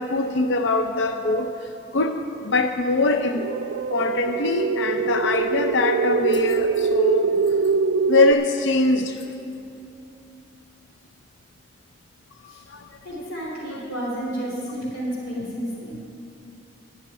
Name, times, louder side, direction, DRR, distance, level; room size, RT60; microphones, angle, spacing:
voice 1, 0.0-3.5 3.9-7.3 8.1-9.2 12.4-12.9, left 2 dB, 70° left, 5 dB, 0.5 m, -23 dB
sound 1, 3.3-8.3, right 5 dB, 65° right, 0.4 m, -23 dB
voice 2, 13.0-16.0, equal, 90° left, -5 dB, 3.2 m, -31 dB
12.0 x 6.4 x 9.5 m, 2.7 s
head